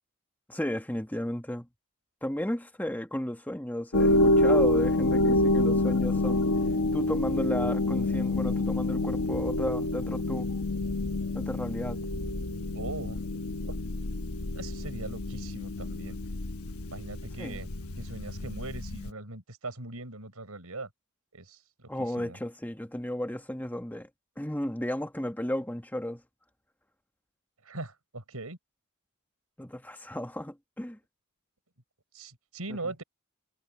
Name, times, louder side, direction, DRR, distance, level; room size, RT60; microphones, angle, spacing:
voice 1, 0.5-1.7 2.2-6.4 6.9-10.5 11.3-12.0 17.4-17.6 21.9-24.1 24.4-26.2 29.6-31.0 32.7-32.9, left 1 dB, 10° left, 1.6 m, -34 dB
sound 1, 3.9-19.1, left 1 dB, 80° left, 1.2 m, -27 dB
voice 2, 12.7-13.2 13.6-13.8 14.5-16.2 16.9-17.7 18.0-20.9 21.3-22.4 27.6-28.6 32.1-33.0, right 2 dB, 85° right, 5.0 m, -40 dB
head